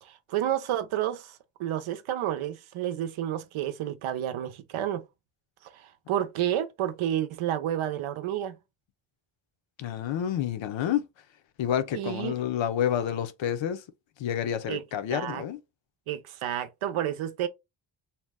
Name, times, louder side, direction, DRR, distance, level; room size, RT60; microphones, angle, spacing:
voice 1, 0.0-5.0 5.6-8.5 11.9-12.3 14.7-14.8 15.1-15.4 16.1-17.5, right 11 dB, 90° right, 0.6 m, -30 dB
voice 2, 9.8-11.0 11.6-13.8 14.2-15.6, left 10 dB, 70° left, 0.7 m, -29 dB
2.8 x 2.1 x 3.3 m
cardioid pair, 85°, 48 cm